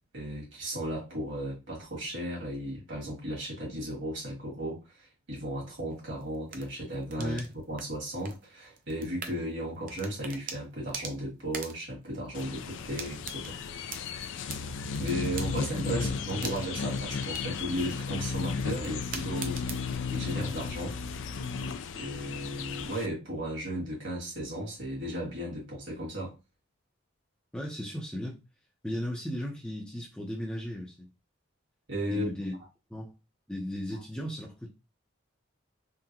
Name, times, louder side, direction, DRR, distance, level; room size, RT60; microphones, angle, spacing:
voice 1, 0.1-13.6 15.0-21.0 21.9-26.3 31.9-32.3, equal, 60° right, 1.8 m, -35 dB
sound 1, 5.9-19.9, right 5 dB, 40° right, 0.5 m, -45 dB
voice 2, 7.2-7.5 15.9-16.1 27.5-28.4 28.8-31.1 32.1-32.6 32.9-33.1 33.5-34.7, equal, 5° left, 0.6 m, -36 dB
sound 2, 12.3-23.1, left 5 dB, 65° left, 0.3 m, -34 dB
3.7 x 2.1 x 2.9 m
head